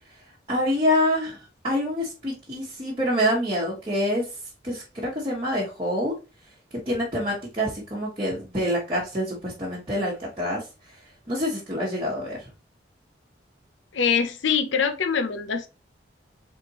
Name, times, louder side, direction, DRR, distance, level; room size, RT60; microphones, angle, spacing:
voice 1, 0.5-4.2 4.6-6.1 6.9-10.6 11.3-12.4, equal, 30° right, 1.2 m, -26 dB
voice 2, 13.9-15.7, left 6 dB, 90° left, 0.6 m, -24 dB
4.2 x 3.6 x 2.9 m
head